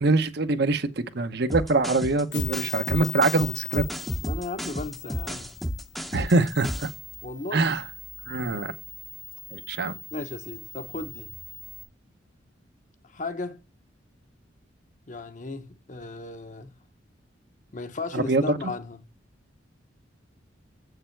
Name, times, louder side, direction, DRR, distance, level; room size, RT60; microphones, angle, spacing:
voice 1, 0.0-3.8 6.1-6.9 7.5-7.8 8.3-8.7 9.5-10.0 18.1-18.6, right 3 dB, 60° right, 0.8 m, -24 dB
sound 1, 1.5-7.0, equal, ahead, 0.7 m, -32 dB
sound 2, 2.3-11.8, left 9 dB, 75° left, 1.2 m, -40 dB
voice 2, 4.2-5.5 7.2-7.8 10.1-11.3 13.1-13.6 15.1-16.8 17.7-19.0, left 2 dB, 40° left, 0.9 m, -35 dB
7.8 x 6.7 x 4.5 m
head